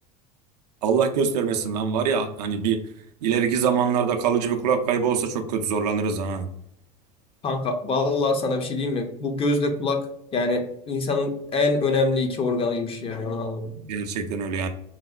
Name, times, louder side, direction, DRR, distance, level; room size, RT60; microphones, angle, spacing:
voice 1, 0.8-2.8 3.2-6.5 13.8-14.7, right 6 dB, 75° right, 6 dB, 0.4 m, -24 dB
voice 2, 7.4-10.0 10.3-13.7, left 3 dB, 25° left, 5 dB, 0.5 m, -24 dB
3.9 x 2.0 x 2.4 m, 0.75 s
hypercardioid pair, 80°, 21 cm